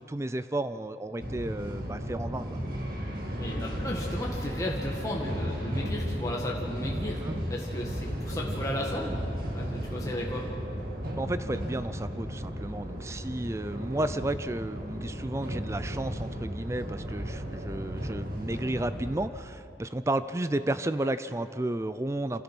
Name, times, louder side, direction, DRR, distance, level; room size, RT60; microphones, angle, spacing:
voice 1, 0.0-2.6 7.2-7.3 11.2-22.4, right 1 dB, 15° right, 12 dB, 0.4 m, -32 dB
sound 1, 1.2-19.3, equal, 55° right, 2.2 m, -35 dB
voice 2, 3.4-10.5, left 1 dB, 20° left, -3 dB, 1.8 m, -35 dB
27.5 x 16.0 x 6.1 m, 2.7 s
head